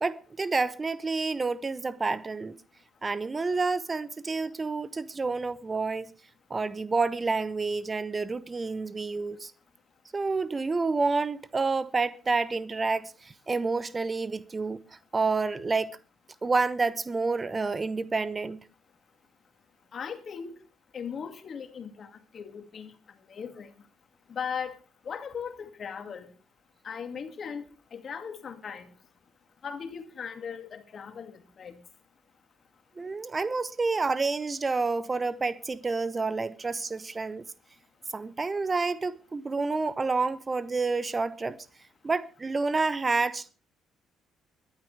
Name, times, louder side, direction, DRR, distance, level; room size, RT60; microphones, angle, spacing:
voice 1, 0.0-2.5 3.0-6.1 6.5-9.5 10.1-14.8 15.1-16.0 16.4-18.6 33.0-37.4 38.1-41.6 42.0-43.5, right 4 dB, 30° right, 0.9 m, -29 dB
voice 2, 19.9-20.6 20.9-22.9 23.3-23.7 24.3-24.7 25.0-26.3 26.8-28.9 29.6-31.8, left 7 dB, 45° left, 2.2 m, -38 dB
22.5 x 11.0 x 3.3 m
hypercardioid pair, 50°, 0 cm